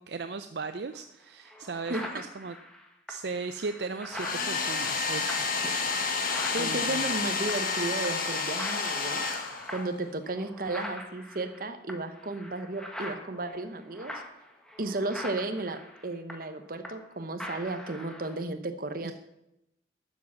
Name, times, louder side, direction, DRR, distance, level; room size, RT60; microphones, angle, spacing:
voice 1, 0.0-2.5 3.1-5.4 6.6-7.0 14.8-15.0 19.0-19.1, right 4 dB, 70° right, 9 dB, 0.5 m, -37 dB
sound 1, 0.9-1.0 1.4-7.8 8.0-8.3 8.6-17.1 17.4-18.4, left 1 dB, 5° left, 1.4 m, -43 dB
Domestic sounds home sounds, 4.1-10.0, left 4 dB, 50° left, 1.4 m, -30 dB
voice 2, 5.6-6.2 6.5-14.1 14.8-19.1, right 2 dB, 55° right, 8 dB, 1.1 m, -34 dB
12.0 x 7.4 x 6.1 m, 0.84 s
head